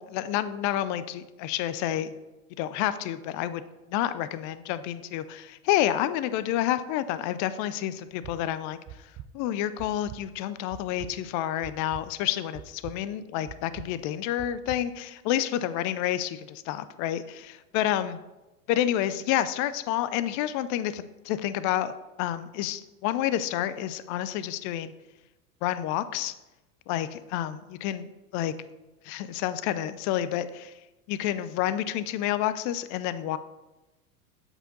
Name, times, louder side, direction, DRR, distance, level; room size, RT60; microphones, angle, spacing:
voice 1, 0.0-2.1 2.6-3.6 3.9-8.8 9.3-18.2 18.7-24.9 25.6-26.3 26.9-28.5 29.0-30.7 31.1-33.4, left 12 dB, 40° left, 14 dB, 0.5 m, -29 dB
sound 1, 8.1-8.4 8.9-9.3 9.8-10.2 10.7-11.1 11.6-12.0 12.5-13.0 13.5-13.9 14.4-14.8, right 12 dB, 35° right, 0.5 m, -42 dB
7.8 x 4.5 x 3.9 m, 1.0 s
hypercardioid pair, 95°, 45 cm